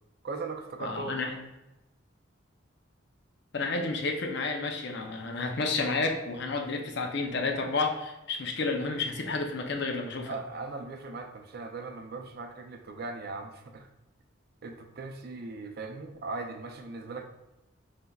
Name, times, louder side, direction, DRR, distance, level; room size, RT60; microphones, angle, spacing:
voice 1, 0.2-1.2 10.3-13.9 14.6-17.2, right 3 dB, 50° right, 4 dB, 0.5 m, -39 dB
voice 2, 0.8-1.4 3.5-10.4, left 3 dB, 60° left, 3 dB, 0.5 m, -31 dB
5.2 x 3.3 x 2.3 m, 0.97 s
head